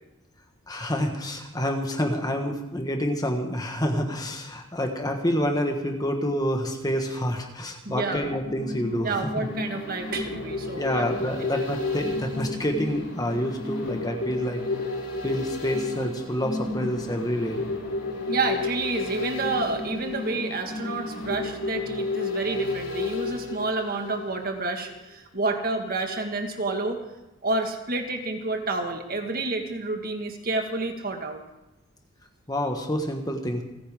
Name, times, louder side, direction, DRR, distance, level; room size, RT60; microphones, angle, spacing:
voice 1, 0.7-9.5 10.7-14.6 15.2-17.6 32.5-33.6, equal, 20° left, 4 dB, 1.5 m, -28 dB
voice 2, 7.9-8.3 9.0-11.1 11.5-11.7 18.3-27.0 27.4-31.4, right 3 dB, 45° right, 4 dB, 1.7 m, -29 dB
sound 1, 8.3-24.5 24.9-25.0, left 3 dB, 70° left, 3.5 m, -32 dB
29.0 x 10.0 x 3.7 m, 0.96 s
head